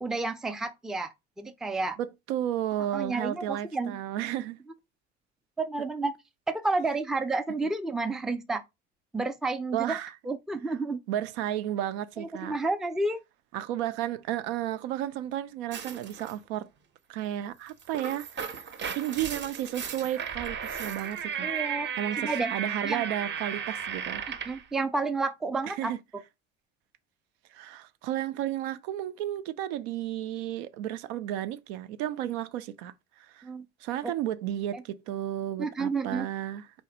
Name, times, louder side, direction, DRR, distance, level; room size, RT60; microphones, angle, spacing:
voice 1, 0.0-2.0 2.9-3.9 5.6-6.1 6.5-8.6 9.1-10.0 10.3-11.0 12.2-13.2 21.4-21.9 22.2-22.5 22.8-23.1 24.5-25.9 33.4-33.7 34.7-34.8 35.6-36.3, right 3 dB, ahead, 0.5 m, -30 dB
voice 2, 2.0-4.6 7.6-7.7 9.7-10.1 11.1-12.6 13.5-16.7 17.1-18.7 18.9-21.5 22.0-24.2 25.7-26.0 27.5-33.5 33.8-36.7, right 12 dB, 65° right, 0.6 m, -33 dB
sound 1, 15.7-16.3 17.7-24.6, right 7 dB, 30° right, 0.8 m, -35 dB
4.3 x 3.1 x 2.8 m
figure-of-eight pair, 60°, 36 cm